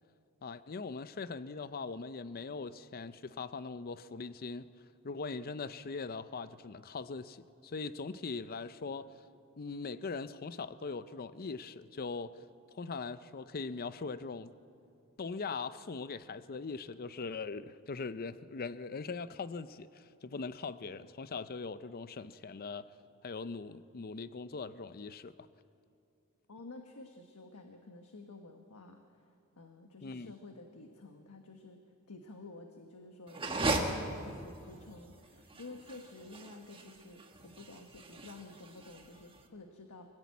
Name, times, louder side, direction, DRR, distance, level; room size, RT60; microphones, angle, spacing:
voice 1, 0.4-4.7 5.0-9.1 9.6-12.4 12.7-14.5 15.2-22.9 23.2-25.3 30.0-30.3, left 4 dB, 40° left, 14 dB, 0.6 m, -41 dB
voice 2, 26.5-29.0 29.6-31.8 32.1-40.1, left 2 dB, 90° left, 4 dB, 1.3 m, -51 dB
sound 1, 33.3-39.4, right 2 dB, 25° right, 1.5 m, -37 dB
24.0 x 14.5 x 8.4 m, 2.6 s
head